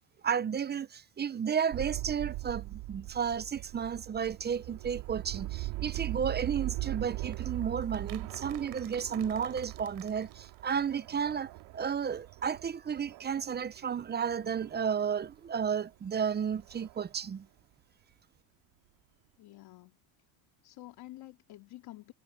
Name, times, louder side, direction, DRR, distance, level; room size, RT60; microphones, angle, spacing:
voice 1, 0.2-17.5, right 7 dB, 20° right, 0.7 m, -33 dB
sound 1, 1.7-15.3 15.6-15.7 16.2-17.0, right 19 dB, 65° right, 3.1 m, -40 dB
sound 2, 7.3-11.3 11.6-11.7 11.9-12.0, right 29 dB, 85° right, 5.6 m, -54 dB
voice 2, 19.4-20.0 20.6-22.1, left 17 dB, 55° left, 2.8 m, -49 dB
supercardioid pair, 110°, 45 cm